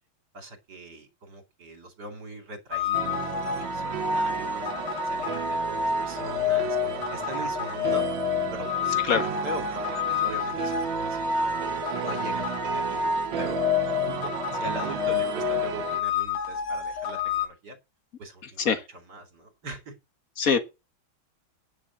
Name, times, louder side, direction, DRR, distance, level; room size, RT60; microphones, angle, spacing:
voice 1, 0.3-4.7 5.0-8.1 8.5-11.6 12.0-17.8 18.2-19.9, right 1 dB, 50° right, 3.5 m, -41 dB
sound 1, 2.7-17.5, left 6 dB, 85° left, 3.1 m, -29 dB
sound 2, 2.9-16.0, right 8 dB, 70° right, 1.6 m, -34 dB
voice 2, 9.0-9.2 18.7-18.8 20.4-20.6, left 6 dB, 45° left, 2.0 m, -22 dB
9.9 x 7.1 x 7.2 m
omnidirectional pair, 2.3 m